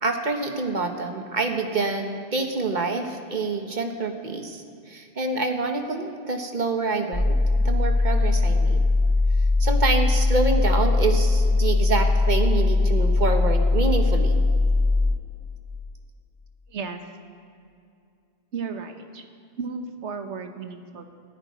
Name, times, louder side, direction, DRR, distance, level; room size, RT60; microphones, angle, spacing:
voice 1, 0.0-7.4 7.6-8.8 9.6-14.4, right 3 dB, 45° right, 5 dB, 1.3 m, -27 dB
sound 1, 7.1-15.1, left 2 dB, 50° left, 2.7 m, -20 dB
voice 2, 16.7-17.0 18.5-19.2 19.6-21.0, right 5 dB, 85° right, 7 dB, 1.4 m, -34 dB
12.0 x 9.9 x 9.4 m, 2.4 s
omnidirectional pair, 1.1 m